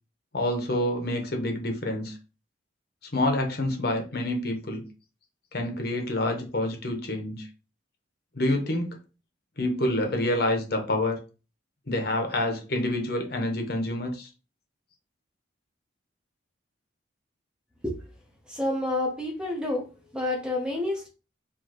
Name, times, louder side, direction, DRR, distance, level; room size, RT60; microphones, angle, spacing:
voice 1, 0.3-2.2 3.1-4.8 5.5-7.5 8.3-9.0 9.6-11.2 11.9-14.3, left 1 dB, 55° left, 4 dB, 1.0 m, -27 dB
voice 2, 18.5-19.9 20.1-21.1, left 1 dB, 5° right, 0 dB, 0.8 m, -29 dB
4.7 x 2.8 x 2.9 m, 0.33 s
head